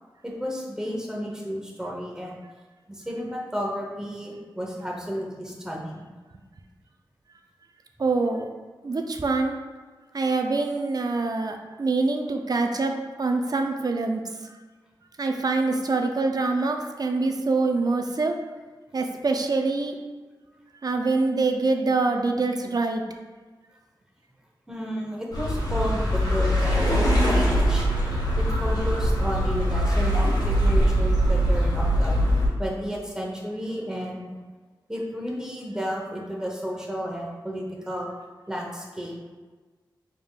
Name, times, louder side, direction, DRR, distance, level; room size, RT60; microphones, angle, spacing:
voice 1, 0.2-2.4 2.9-6.1 24.7-26.9 27.3-27.9 28.4-32.2 32.6-34.2 34.9-38.1 38.5-39.2, equal, 5° right, -2 dB, 1.0 m, -32 dB
voice 2, 8.0-8.5 8.8-9.6 10.1-14.2 15.2-18.4 18.9-20.0 20.8-23.0, right 3 dB, 50° right, 4 dB, 0.5 m, -25 dB
sound 1, 25.3-32.5, equal, 55° left, 1.3 m, -22 dB
5.0 x 3.6 x 2.4 m, 1.3 s
cardioid pair, 55°, 8 cm